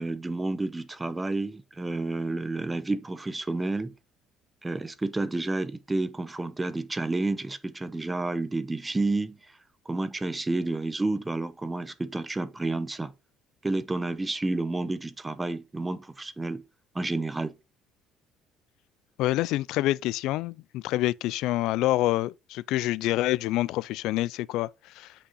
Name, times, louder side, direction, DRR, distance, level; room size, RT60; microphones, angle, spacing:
voice 1, 0.0-3.9 4.6-9.6 9.9-13.1 13.6-16.6 16.9-17.5, right 2 dB, 10° right, 0.7 m, -30 dB
voice 2, 19.2-25.1, left 16 dB, 70° left, 0.4 m, -27 dB
8.4 x 5.6 x 4.0 m
cardioid pair, 155°, 0 cm